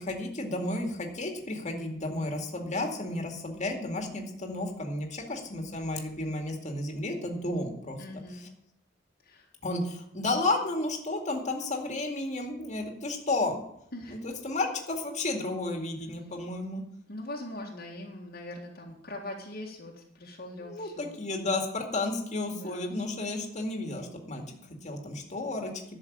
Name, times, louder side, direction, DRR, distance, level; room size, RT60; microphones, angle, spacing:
voice 1, 0.0-8.2 9.6-13.6 14.1-16.8 20.6-24.4 24.8-25.7, left 2 dB, 40° left, 2 dB, 2.2 m, -32 dB
voice 2, 8.0-8.5 9.2-9.5 13.9-14.2 17.1-21.2 22.5-22.9, left 1 dB, 55° left, -2 dB, 1.9 m, -42 dB
11.5 x 6.4 x 8.7 m, 0.73 s
head